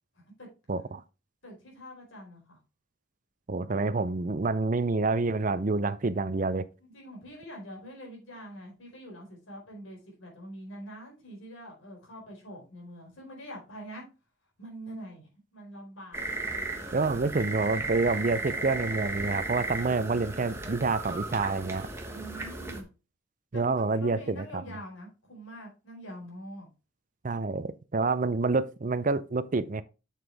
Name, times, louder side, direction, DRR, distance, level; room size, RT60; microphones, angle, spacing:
voice 1, 0.7-1.0 3.5-6.7 16.9-21.9 23.5-24.6 27.2-29.8, right 3 dB, 40° right, 0.5 m, -28 dB
voice 2, 1.4-2.6 6.8-14.0 14.6-16.3 22.1-22.9 23.5-26.7, equal, 75° left, 4.3 m, -45 dB
sound 1, 16.1-22.8, right 2 dB, 15° right, 1.2 m, -35 dB
7.4 x 7.0 x 3.4 m
head